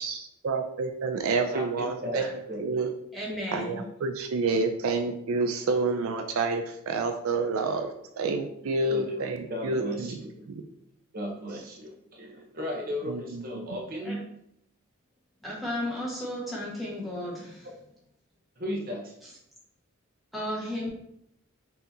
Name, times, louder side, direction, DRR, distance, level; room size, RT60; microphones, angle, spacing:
voice 1, 0.0-2.3 2.6-2.9 3.5-10.2 10.5-10.6 13.1-13.8, right 3 dB, 70° right, 6 dB, 0.4 m, -29 dB
voice 2, 1.5-2.2 2.5-2.8 8.8-9.2 9.5-10.5 11.1-14.2 18.6-19.1, equal, 40° right, 0 dB, 0.8 m, -35 dB
voice 3, 3.1-3.8 14.0-14.2 15.4-17.7 20.3-20.9, left 1 dB, ahead, -7 dB, 1.2 m, -34 dB
5.7 x 2.8 x 2.7 m, 0.75 s
head